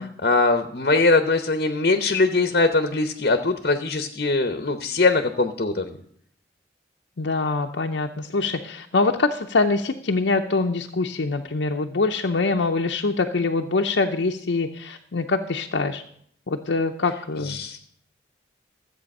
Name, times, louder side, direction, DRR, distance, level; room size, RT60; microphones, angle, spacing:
voice 1, 0.2-5.9 17.5-17.8, left 3 dB, 55° left, 8 dB, 0.8 m, -21 dB
voice 2, 7.2-16.0 16.5-17.6, left 3 dB, 80° left, 2 dB, 0.7 m, -24 dB
14.0 x 8.1 x 5.4 m, 0.65 s
head